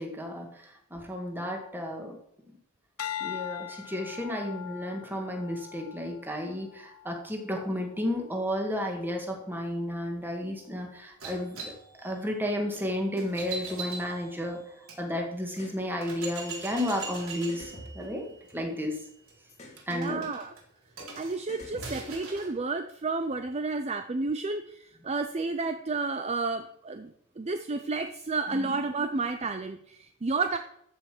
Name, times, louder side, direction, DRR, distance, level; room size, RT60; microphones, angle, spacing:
voice 1, 0.0-2.2 3.2-11.7 12.0-14.6 15.0-19.0 19.9-20.3 28.5-28.8, left 1 dB, 10° right, 2 dB, 2.0 m, -32 dB
sound 1, 3.0-7.4 8.0-8.4, left 11 dB, 85° left, 0.6 m, -41 dB
sound 2, 11.2-15.0 15.6-15.7 16.0-22.5, right 4 dB, 75° right, 3.8 m, -42 dB
sound 3, 15.5-15.8 17.0-17.1 17.5-18.9 19.5-19.8 21.0-21.1 21.5-22.6, left 1 dB, 30° left, 2.1 m, -46 dB
voice 2, 19.9-20.5 21.2-30.6, right 3 dB, 30° right, 8 dB, 0.5 m, -31 dB
14.0 x 5.5 x 6.1 m, 0.74 s
head